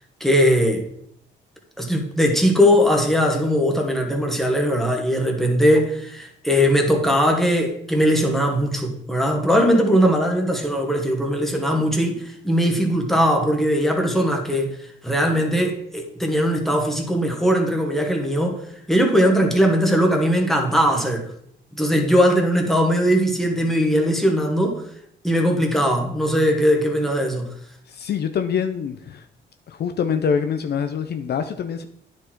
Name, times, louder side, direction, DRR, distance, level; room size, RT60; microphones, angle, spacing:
voice 1, 0.2-0.8 1.8-21.3 21.7-24.8 25.2-27.5, equal, ahead, 1 dB, 1.7 m, -20 dB
voice 2, 27.9-29.3 29.7-31.9, left 7 dB, 55° left, 8 dB, 0.6 m, -25 dB
9.7 x 4.4 x 4.5 m, 0.70 s
cardioid pair, 90°, 20 cm